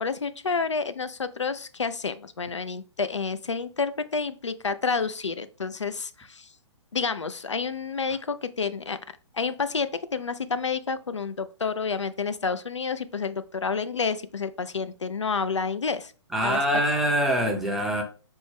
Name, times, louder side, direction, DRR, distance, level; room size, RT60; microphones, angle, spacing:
voice 1, 0.0-6.5 6.9-9.0 9.3-16.1 16.4-16.6, left 5 dB, 75° left, 0.4 m, -29 dB
voice 2, 16.3-18.0, equal, ahead, 0.5 m, -24 dB
4.4 x 2.2 x 3.4 m
figure-of-eight pair, 120°, 15 cm